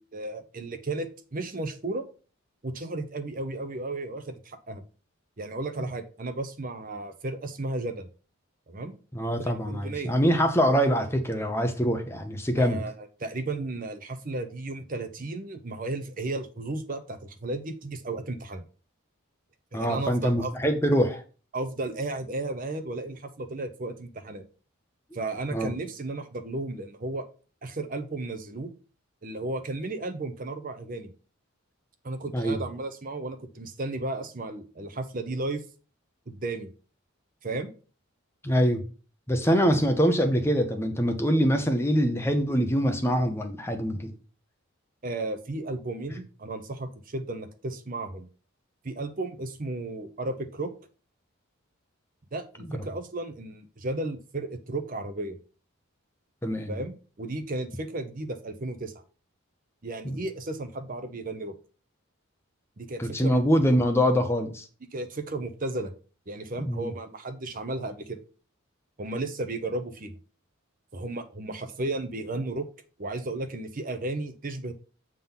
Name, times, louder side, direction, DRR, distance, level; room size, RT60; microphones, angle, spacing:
voice 1, 0.0-2.1 2.6-4.8 5.4-8.1 8.7-8.9 9.4-10.1 12.6-18.6 19.7-20.5 21.5-24.5 25.1-27.3 27.6-28.7 29.2-31.1 32.0-35.6 36.3-36.7 37.4-37.7 45.0-48.3 48.8-50.7 52.3-55.4 56.7-59.0 59.8-61.6 62.8-63.5 64.9-65.9 66.3-68.2 69.0-70.1 70.9-72.7 73.0-74.7, right 2 dB, 40° right, 0.7 m, -34 dB
voice 2, 9.1-12.8 19.7-21.2 25.5-25.7 32.3-32.6 38.4-38.8 39.3-44.1 56.4-56.8 60.0-60.2 63.0-64.6 66.6-66.9, equal, 10° left, 0.7 m, -24 dB
7.4 x 3.7 x 5.6 m
head